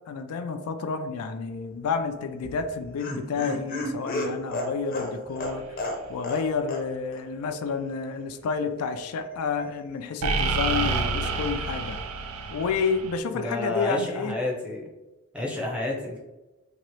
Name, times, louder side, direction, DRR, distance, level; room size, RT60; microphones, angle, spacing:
voice 1, 0.1-5.6 6.1-12.0 12.5-14.4, left 5 dB, 90° left, 8 dB, 0.4 m, -30 dB
Laughter, 2.4-6.4 6.7-6.8 7.1-7.2, left 1 dB, 40° left, 0.6 m, -32 dB
sound 1, 5.4-5.6 10.2-13.2, right 4 dB, 85° right, 0.4 m, -28 dB
voice 2, 10.8-11.2 13.3-14.9 15.3-16.2, left 2 dB, 5° right, -2 dB, 0.6 m, -30 dB
2.9 x 2.9 x 3.0 m, 1.1 s
head